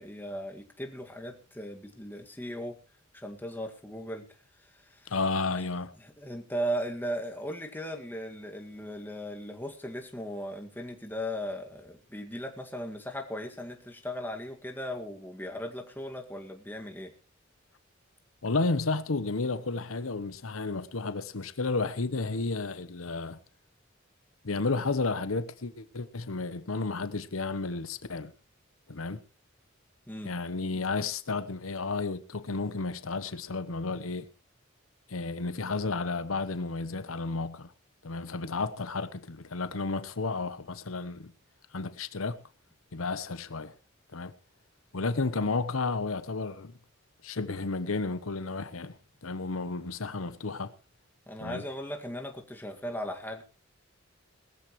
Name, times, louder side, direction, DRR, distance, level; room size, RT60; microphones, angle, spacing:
voice 1, 0.0-2.8 3.1-4.3 4.6-5.1 6.0-17.1 30.1-30.3 30.7-30.9 51.3-53.4, equal, 10° left, 2.0 m, -37 dB
voice 2, 5.1-5.9 18.4-23.4 24.4-28.3 28.9-29.2 30.2-34.3 35.1-37.7 38.0-41.3 41.7-42.4 42.9-43.7 44.1-44.3 44.9-46.7 47.2-50.7 51.4-51.6, left 3 dB, 90° left, 0.9 m, -32 dB
20.0 x 14.0 x 3.1 m
head